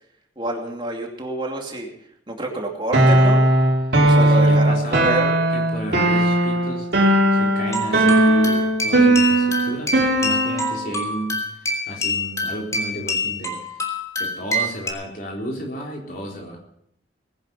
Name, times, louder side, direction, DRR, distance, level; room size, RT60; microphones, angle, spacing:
voice 1, 0.4-1.9 2.3-3.4 4.0-5.4, right 1 dB, 25° right, 1 dB, 2.6 m, -27 dB
sound 1, 2.9-10.8, right 1 dB, 65° right, 3.2 m, -18 dB
voice 2, 4.2-5.2 5.5-9.9 10.2-11.4 11.9-13.6 14.2-16.6, equal, 50° left, 0 dB, 4.0 m, -32 dB
sound 2, 7.7-14.9, left 1 dB, 20° left, 3.2 m, -26 dB
20.0 x 10.5 x 5.5 m, 0.70 s
head